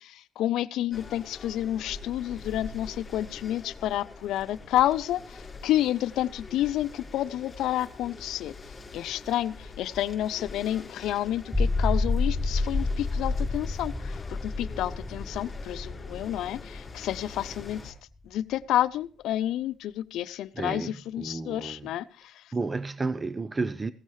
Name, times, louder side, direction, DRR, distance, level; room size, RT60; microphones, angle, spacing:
voice 1, 0.0-8.5 8.9-17.9 18.3-22.3, left 13 dB, 85° left, 0.6 m, -30 dB
sound 1, 0.9-17.9, left 3 dB, 30° left, 4.8 m, -44 dB
sound 2, 11.4-17.9, left 3 dB, 15° left, 0.9 m, -29 dB
voice 2, 20.5-21.9 22.5-23.9, right 3 dB, 25° right, 0.6 m, -32 dB
16.5 x 15.0 x 3.2 m
cardioid pair, 90°, 0 cm